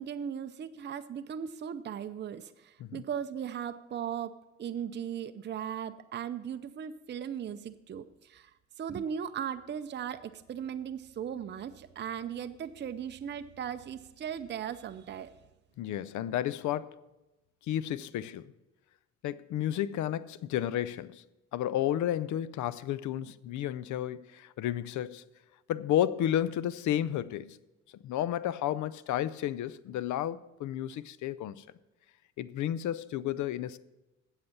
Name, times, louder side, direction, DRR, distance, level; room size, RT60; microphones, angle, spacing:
voice 1, 0.0-8.5 8.8-15.3, right 8 dB, 35° right, 0.5 m, -38 dB
voice 2, 15.8-17.0 17.7-18.5 19.2-21.2 21.5-25.2 25.7-27.6 28.0-31.6 32.4-33.8, left 11 dB, 75° left, 0.5 m, -32 dB
8.2 x 7.8 x 7.1 m
cardioid pair, 90°, 30 cm